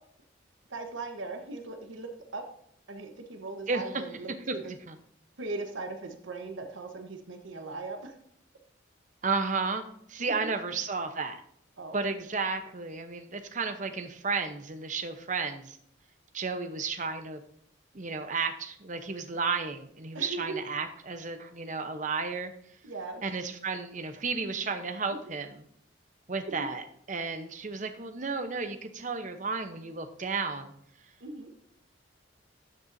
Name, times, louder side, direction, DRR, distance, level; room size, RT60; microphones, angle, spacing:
voice 1, 0.7-2.4 2.9-4.7 5.4-8.1 10.2-10.5 11.8-12.0 20.1-20.6 22.8-23.2 25.1-25.2 26.4-26.7 31.2-31.5, right 3 dB, 75° right, 5 dB, 1.2 m, -39 dB
voice 2, 4.5-5.0 9.2-9.8 10.1-11.4 11.9-15.8 16.3-17.4 17.9-22.5 23.2-25.5 26.3-30.7, right 4 dB, 40° right, 8 dB, 0.8 m, -33 dB
12.5 x 6.9 x 2.7 m, 0.69 s
head